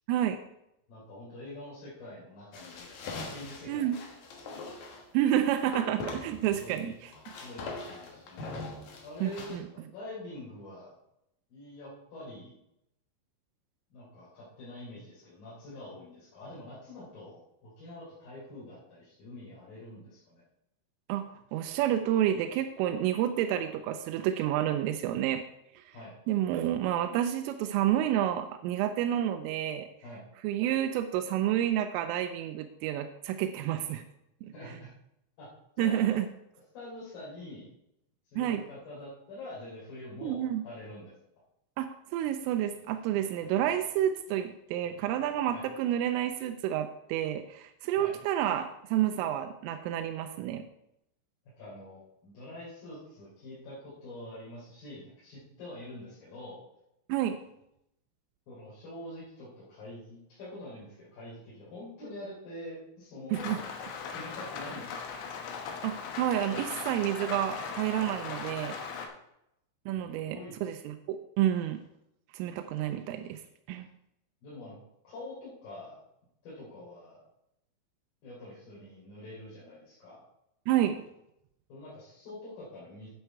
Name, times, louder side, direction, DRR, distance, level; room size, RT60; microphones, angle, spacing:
voice 1, 0.9-4.0 6.5-6.9 7.4-8.5 9.0-11.0 11.5-12.5 13.9-20.4 25.9-26.1 30.0-30.2 34.5-34.9 35.4-35.5 35.8-36.2 36.7-37.7 38.2-41.1 45.5-45.6 48.0-48.1 51.6-56.6 58.5-63.5 64.1-65.1 69.9-70.6 74.4-74.8 75.0-76.0 76.4-77.2 78.2-80.2 81.7-83.1, left 1 dB, 50° left, -9 dB, 4.7 m, -45 dB
sound 1, 2.5-5.1 5.7-6.8 7.1-9.6, left 3 dB, 90° left, 1.6 m, -42 dB
voice 2, 5.1-6.9 9.2-9.6 21.1-25.4 25.8-25.9 26.3-29.9 30.4-34.0 34.4-34.5 35.8-36.3 38.4-38.6 40.2-40.6 41.8-41.9 42.1-50.6 57.1-57.4 63.5-63.6 65.8-68.8 69.9-71.8 72.3-73.4 73.7-73.9 80.7-81.0, right 11 dB, 90° right, 7 dB, 3.2 m, -29 dB
Rain, 63.3-69.1, left 5 dB, 75° left, 3.1 m, -39 dB
9.9 x 8.0 x 4.6 m, 0.81 s
omnidirectional pair, 5.7 m